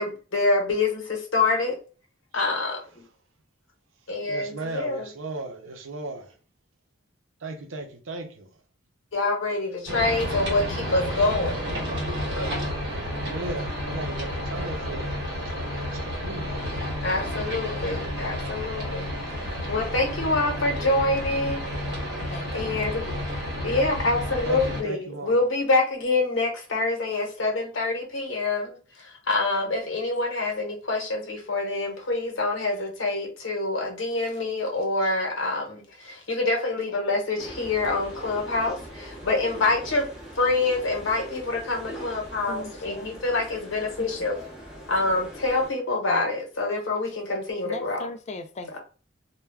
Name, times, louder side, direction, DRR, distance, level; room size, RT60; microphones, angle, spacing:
voice 1, 0.0-1.7 2.3-3.0 4.1-5.1 9.1-11.6 12.2-12.5 17.0-19.1 19.7-21.6 22.5-23.1 23.6-40.1 40.3-44.4 44.9-48.0, left 2 dB, 75° left, 0.9 m, -26 dB
voice 2, 4.3-6.4 7.4-8.5 13.2-16.9 24.4-25.3, right 2 dB, 85° right, 0.6 m, -37 dB
sound 1, 9.9-24.8, left 1 dB, 65° right, 1.1 m, -31 dB
voice 3, 22.3-22.8 42.5-43.2 47.6-48.8, left 3 dB, 35° left, 0.3 m, -38 dB
sound 2, 37.4-45.7, right 1 dB, 5° right, 0.8 m, -42 dB
2.2 x 2.2 x 3.3 m
head